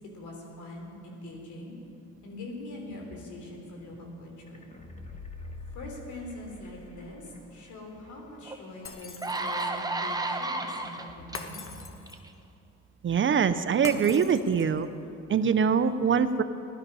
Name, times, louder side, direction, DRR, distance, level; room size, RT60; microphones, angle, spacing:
voice 1, 0.1-1.8 2.2-4.7 5.7-11.8, left 1 dB, 75° left, 0 dB, 3.3 m, -43 dB
sound 1, 4.5-7.4 7.7-7.8, left 2 dB, 25° left, 1.6 m, -44 dB
sound 2, 8.5-8.6 9.0-11.4 12.1-12.3, right 2 dB, 10° right, 0.9 m, -32 dB
Shatter, 8.9-9.8 11.4-12.3 13.9-14.9, left 4 dB, 45° left, 1.4 m, -42 dB
voice 2, 13.0-14.9 15.3-16.4, right 6 dB, 40° right, 12 dB, 0.6 m, -23 dB
16.0 x 12.0 x 5.4 m, 2.8 s
cardioid pair, 90°, 30 cm